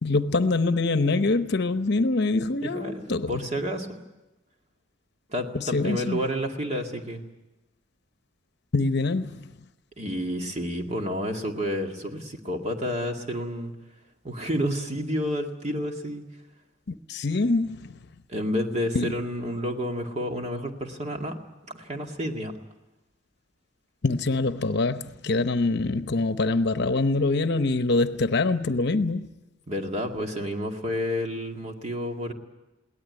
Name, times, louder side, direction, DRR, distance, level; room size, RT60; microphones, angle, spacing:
voice 1, 0.0-3.5 5.5-6.2 8.7-9.5 16.9-17.9 18.9-19.1 24.0-29.3, left 3 dB, 60° left, 0.9 m, -24 dB
voice 2, 2.6-4.0 5.3-7.2 10.0-13.7 14.2-16.2 18.3-21.4 21.7-22.5 29.7-32.3, equal, 35° right, 2.1 m, -30 dB
22.5 x 17.5 x 9.6 m
head